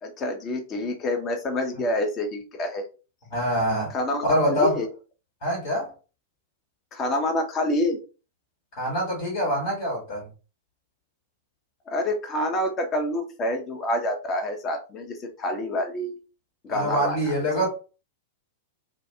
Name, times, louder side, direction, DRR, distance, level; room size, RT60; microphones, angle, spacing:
voice 1, 0.0-2.9 3.9-4.9 6.9-8.0 11.9-16.2 16.6-17.2, left 1 dB, 25° left, 0.6 m, -27 dB
voice 2, 3.3-3.9 4.2-4.8 5.4-5.9 8.8-10.3 16.7-17.7, equal, 55° left, 1.1 m, -25 dB
2.3 x 2.3 x 2.6 m
figure-of-eight pair, 95°, 0 cm